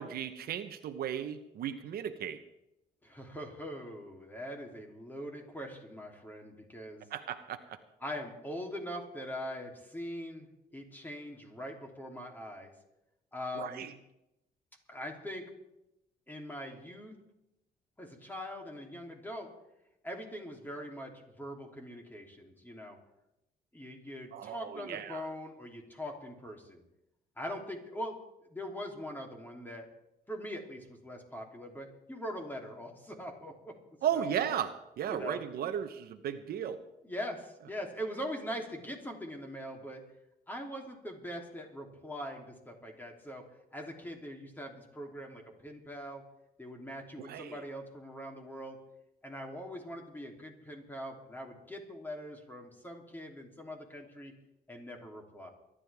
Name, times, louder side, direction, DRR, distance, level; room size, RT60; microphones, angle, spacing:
voice 1, 0.0-2.4 7.1-7.6 13.5-13.9 24.3-25.2 34.0-36.8 47.2-47.5, right 9 dB, 75° right, 9 dB, 1.0 m, -35 dB
voice 2, 3.0-7.0 8.0-12.7 13.3-13.9 14.9-15.4 16.3-17.2 18.0-19.5 20.0-23.0 23.7-26.8 27.4-28.2 28.5-29.9 30.3-33.7 34.1-34.3 35.1-35.4 37.0-40.0 40.5-43.4 43.7-46.2 46.6-48.8 49.2-54.3 54.7-55.5, equal, 10° left, 1 dB, 3.1 m, -42 dB
24.0 x 11.5 x 3.5 m, 0.87 s
cardioid pair, 100°, 16 cm